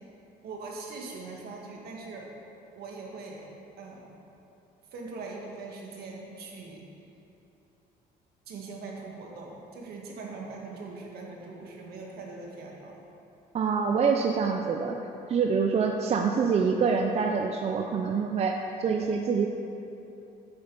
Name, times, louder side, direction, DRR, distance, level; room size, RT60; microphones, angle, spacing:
voice 1, 0.4-2.3 2.7-3.5 3.8-4.1 4.9-6.9 8.5-13.0, right 3 dB, 65° right, -1 dB, 1.7 m, -41 dB
voice 2, 13.5-19.5, right 5 dB, 40° right, 3 dB, 0.5 m, -26 dB
8.1 x 6.9 x 5.3 m, 2.9 s
cardioid pair, 110°, 17 cm